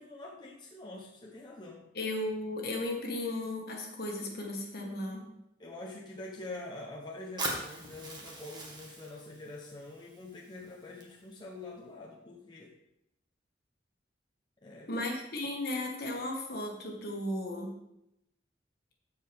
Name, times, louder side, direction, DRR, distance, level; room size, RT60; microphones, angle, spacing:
voice 1, 0.0-1.9 5.6-12.7 14.6-15.1, left 2 dB, 25° left, -2 dB, 0.8 m, -45 dB
voice 2, 1.9-5.3 14.9-17.7, left 1 dB, 60° left, 0 dB, 1.7 m, -35 dB
Fire, 7.4-11.4, right 2 dB, 25° right, 1.5 m, -41 dB
13.5 x 4.8 x 3.5 m, 0.83 s
head